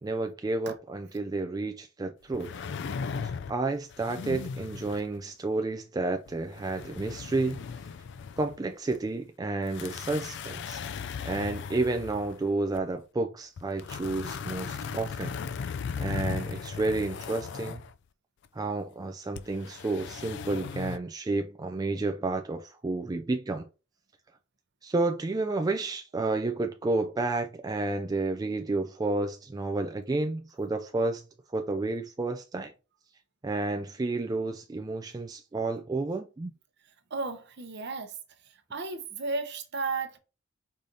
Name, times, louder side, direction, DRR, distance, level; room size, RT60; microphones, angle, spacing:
voice 1, 0.0-2.5 3.2-7.6 8.4-10.8 11.2-15.3 16.0-17.8 18.5-23.6 24.8-31.2 31.5-32.7 33.4-36.5, right 2 dB, 20° right, 0.3 m, -31 dB
sound 1, 2.3-3.6 3.9-5.2 6.3-8.6 8.9-9.0 9.7-12.8 13.6-17.9 19.4-21.0, left 6 dB, 60° left, 0.3 m, -37 dB
voice 2, 37.1-38.2 38.4-40.2, right 3 dB, 55° right, 0.8 m, -34 dB
4.9 x 2.7 x 3.8 m
head